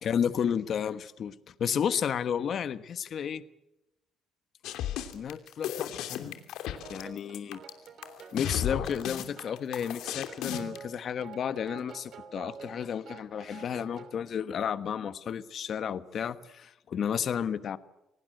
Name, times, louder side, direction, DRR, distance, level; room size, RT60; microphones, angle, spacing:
voice 1, 0.0-3.4 5.1-6.4 6.9-7.6 8.3-17.8, left 8 dB, 45° left, 14 dB, 1.3 m, -32 dB
sound 1, 4.6-10.8, left 11 dB, 75° left, 2.9 m, -34 dB
sound 2, 6.8-14.2, right 6 dB, 50° right, 3.0 m, -48 dB
27.0 x 19.0 x 7.9 m, 0.92 s
cardioid pair, 135°, 0 cm